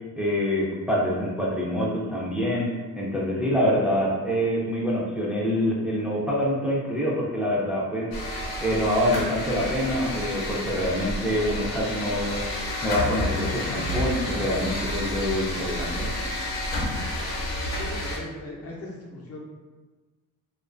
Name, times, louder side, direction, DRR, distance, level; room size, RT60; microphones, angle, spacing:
voice 1, 0.2-2.7 3.0-8.1 8.6-12.4 12.8-16.1, equal, 5° right, -5 dB, 0.3 m, -26 dB
sound 1, 8.1-18.2, left 1 dB, 85° left, 0.7 m, -30 dB
voice 2, 17.5-19.4, left 2 dB, 45° left, -2 dB, 0.6 m, -39 dB
2.3 x 2.3 x 2.4 m, 1.3 s
cardioid pair, 145°, 36 cm